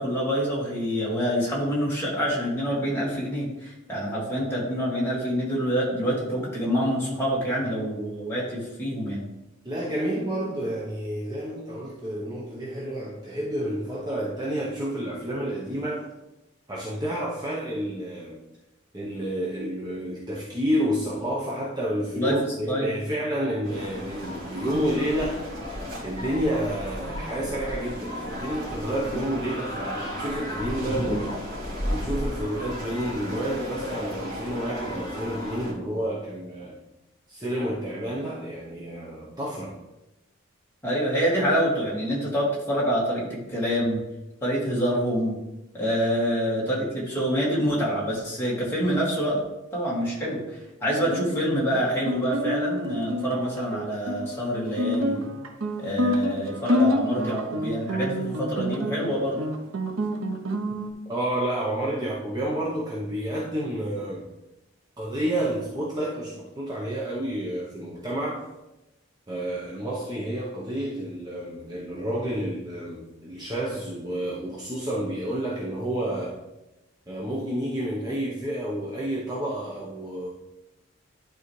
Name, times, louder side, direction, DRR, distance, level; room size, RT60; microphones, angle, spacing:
voice 1, 0.0-9.2 22.1-22.4 22.7-22.9 40.8-44.0 44.4-45.3 45.7-49.4 49.7-55.2 55.8-59.4, equal, 10° left, -6 dB, 2.2 m, -26 dB
voice 2, 9.6-16.1 16.7-18.4 18.9-25.5 26.0-31.4 31.9-36.8 37.3-39.8 61.1-64.3 65.0-68.5 69.3-76.4 77.1-80.3, right 1 dB, 20° right, -5 dB, 0.9 m, -30 dB
sound 1, 23.6-35.7, equal, 60° right, 2.6 m, -34 dB
Guitar, 50.9-60.9, left 1 dB, 85° right, 0.8 m, -28 dB
11.0 x 4.0 x 3.2 m, 0.95 s
head